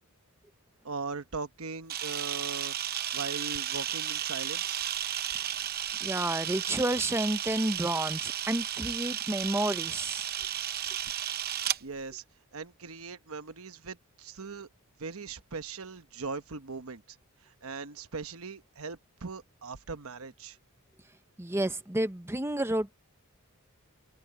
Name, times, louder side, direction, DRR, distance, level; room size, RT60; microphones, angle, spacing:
voice 1, 0.8-2.7 3.1-4.8 11.8-12.2 12.5-14.7 15.0-17.0 17.4-20.6, right 4 dB, 70° right, 1.1 m, -40 dB
Camera, 1.9-11.8, right 10 dB, 45° right, 0.8 m, -33 dB
voice 2, 6.0-10.3 21.4-22.9, right 1 dB, 10° right, 0.9 m, -30 dB
head